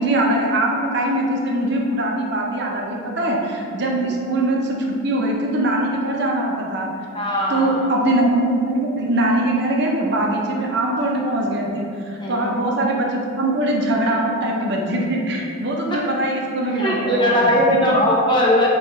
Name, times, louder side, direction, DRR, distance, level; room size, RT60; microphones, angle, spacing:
voice 1, 0.0-6.9 7.5-17.5, right 1 dB, 55° right, -1 dB, 0.5 m, -22 dB
voice 2, 7.1-7.9 12.2-12.6 15.9-16.0 16.7-18.7, equal, 20° left, -3 dB, 0.5 m, -19 dB
5.7 x 2.3 x 2.9 m, 2.5 s
head